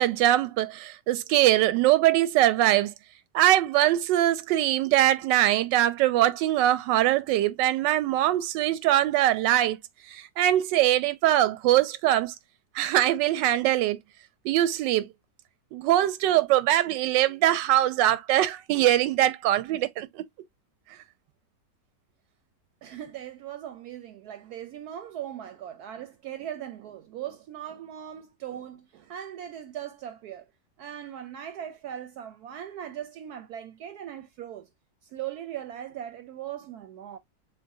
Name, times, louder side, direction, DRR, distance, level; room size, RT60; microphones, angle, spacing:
voice 1, 0.0-2.9 3.3-9.8 10.1-12.3 12.7-14.0 14.4-15.1 15.7-20.2, right 13 dB, 90° right, 1.3 m, -22 dB
voice 2, 22.8-30.5 30.8-34.7 35.0-37.2, right 10 dB, 70° right, 1.0 m, -39 dB
6.7 x 2.4 x 2.6 m
omnidirectional pair, 1.9 m